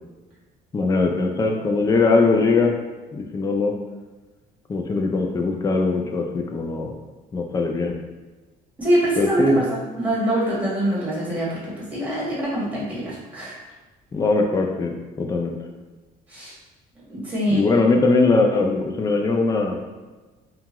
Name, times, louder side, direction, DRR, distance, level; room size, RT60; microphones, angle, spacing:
voice 1, 0.7-2.7 3.1-3.7 4.7-6.9 7.3-8.0 9.2-9.6 14.1-15.6 17.5-19.8, left 3 dB, 20° left, 3 dB, 0.4 m, -21 dB
voice 2, 8.8-11.6 11.9-13.6 16.3-16.5 17.1-17.7, right 1 dB, 10° right, -8 dB, 1.3 m, -24 dB
2.8 x 2.4 x 2.9 m, 1.2 s
cardioid pair, 110°, 17 cm